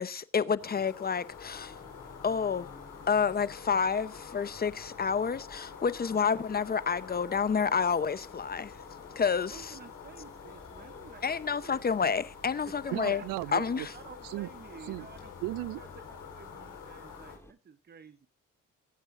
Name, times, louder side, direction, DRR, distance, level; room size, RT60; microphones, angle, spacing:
voice 1, 0.0-1.7 2.2-2.7 3.1-8.8 9.2-9.8 11.2-13.2 13.5-13.9, left 6 dB, 30° left, 0.8 m, -29 dB
sound 1, 0.6-17.4, left 7 dB, 70° left, 4.2 m, -47 dB
Mechanisms, 1.3-17.5, left 1 dB, 10° left, 1.8 m, -55 dB
voice 2, 9.5-11.3 11.5-11.8 12.7-13.3 13.9-15.3 15.8-18.3, right 6 dB, 30° right, 0.8 m, -51 dB
voice 3, 12.9-13.9 14.3-14.5 14.9-15.1 15.4-15.8, right 18 dB, 80° right, 0.5 m, -35 dB
21.5 x 9.0 x 2.6 m
cardioid pair, 80°, 32 cm